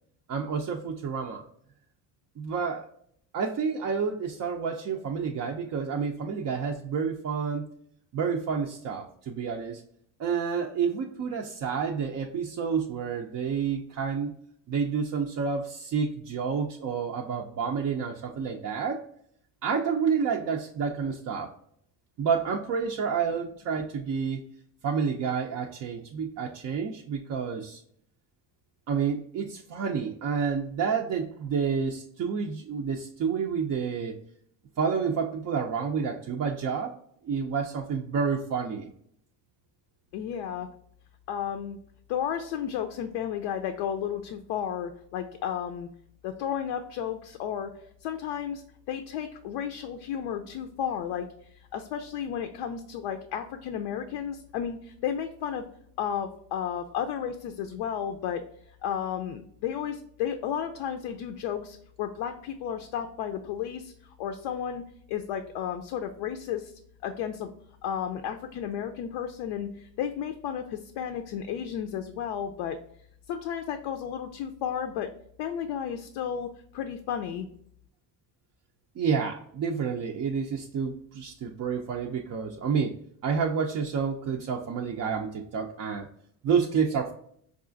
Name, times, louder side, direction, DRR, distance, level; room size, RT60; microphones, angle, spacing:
voice 1, 0.3-1.4 2.4-2.9 3.3-7.7 8.1-9.8 10.2-14.3 14.7-19.0 19.6-21.5 22.2-24.4 24.8-27.8 28.9-34.2 34.8-37.0 37.2-38.9 79.0-86.1 86.4-87.1, right 6 dB, 40° right, 0 dB, 0.4 m, -29 dB
voice 2, 40.1-40.7 41.3-41.8 42.1-45.9 46.2-47.7 48.0-51.3 51.7-55.6 56.0-58.4 58.8-63.9 64.2-64.8 65.1-66.7 67.0-67.5 67.8-72.8 73.3-75.1 75.4-77.5, left 9 dB, 70° left, 6 dB, 0.5 m, -33 dB
4.7 x 2.4 x 2.5 m, 0.66 s
supercardioid pair, 95°, 46 cm